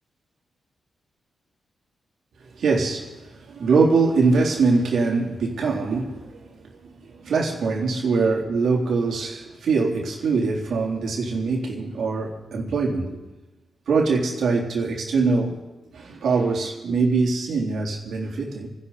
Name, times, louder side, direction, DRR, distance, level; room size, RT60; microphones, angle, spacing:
voice 1, 2.6-6.5 7.1-13.2 13.9-15.6 15.9-18.7, right 4 dB, 75° right, 3.5 m, -23 dB
29.0 x 11.0 x 4.2 m
cardioid pair, 60°, 0 cm